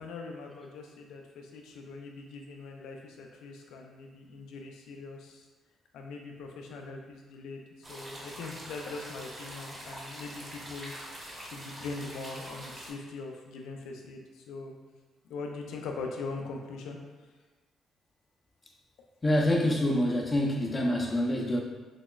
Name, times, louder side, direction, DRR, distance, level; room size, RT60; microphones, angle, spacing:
voice 1, 0.0-5.5 5.9-10.9 11.4-14.8 15.3-17.0, left 3 dB, 85° left, 2 dB, 0.4 m, -41 dB
sound 1, 7.8-12.9, right 1 dB, 30° right, 0.9 m, -44 dB
voice 2, 19.2-21.6, left 1 dB, 25° left, 0 dB, 0.6 m, -26 dB
5.8 x 2.0 x 2.3 m, 1.3 s
cardioid pair, 90°, 0 cm